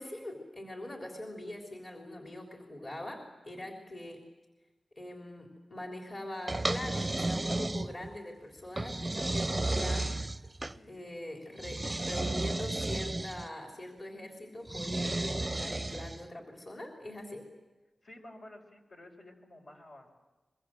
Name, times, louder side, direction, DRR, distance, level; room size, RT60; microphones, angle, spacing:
voice 1, 0.0-4.2 5.0-10.2 10.9-17.5, left 1 dB, 40° left, 1 dB, 3.5 m, -42 dB
sound 1, 6.5-8.2 8.8-10.8 11.6-13.5 14.7-16.3, right 2 dB, 20° right, 0.7 m, -33 dB
voice 2, 10.8-11.1 18.0-20.1, left 1 dB, 65° left, 1 dB, 5.2 m, -52 dB
23.5 x 22.5 x 7.6 m, 1.2 s
cardioid pair, 65°, 0 cm